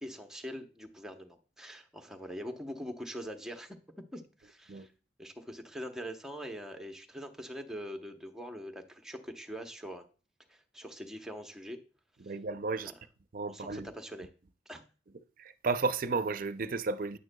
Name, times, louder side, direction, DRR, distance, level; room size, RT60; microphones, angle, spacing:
voice 1, 0.0-3.8 4.1-4.9 5.2-10.0 10.5-11.8 12.2-12.3 12.8-12.9 13.5-14.3 14.7-14.8, equal, 5° right, 0.8 m, -43 dB
voice 2, 12.2-12.9 13.3-13.9 15.4-17.2, right 4 dB, 50° right, 0.5 m, -33 dB
9.7 x 9.2 x 2.2 m
head